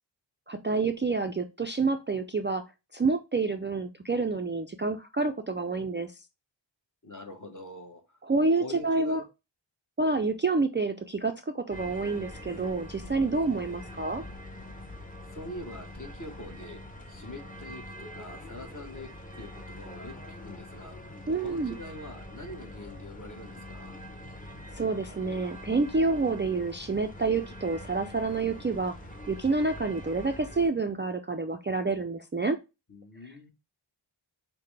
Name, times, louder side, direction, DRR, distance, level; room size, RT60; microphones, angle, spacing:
voice 1, 0.5-2.6 2.9-6.1 8.2-9.2 10.0-14.2 21.3-21.7 24.7-28.9 29.3-32.6, right 3 dB, 25° right, 0.3 m, -28 dB
voice 2, 7.0-8.2 8.6-9.2 15.3-16.8 17.1-19.1 19.4-24.0 32.9-33.5, left 1 dB, 40° left, 1.2 m, -44 dB
sound 1, 11.7-30.7, left 1 dB, 15° left, 0.8 m, -44 dB
5.6 x 2.2 x 3.2 m
wide cardioid pair, 45°, 47 cm